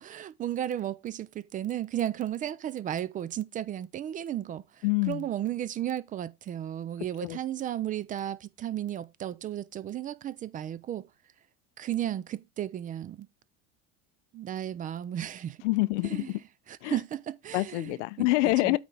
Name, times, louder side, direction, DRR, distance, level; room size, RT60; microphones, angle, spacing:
voice 1, 0.0-11.1 11.8-13.3 14.3-15.6 16.0-16.3 16.7-18.0 18.6-18.8, right 11 dB, 25° right, 0.3 m, -34 dB
voice 2, 4.8-5.3 7.2-7.4 15.6-16.4 16.8-17.0 17.5-18.8, left 21 dB, 75° left, 0.6 m, -26 dB
8.7 x 3.3 x 5.2 m
supercardioid pair, 115°, 36 cm